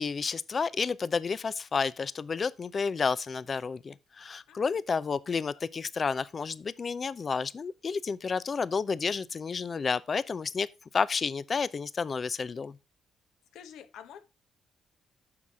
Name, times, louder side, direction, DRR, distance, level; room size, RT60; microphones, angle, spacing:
voice 1, 0.0-10.7 10.9-12.8, left 5 dB, 45° left, 0.6 m, -31 dB
voice 2, 13.5-14.2, left 8 dB, 75° left, 1.2 m, -48 dB
9.7 x 6.2 x 3.6 m
supercardioid pair, 50°, 0 cm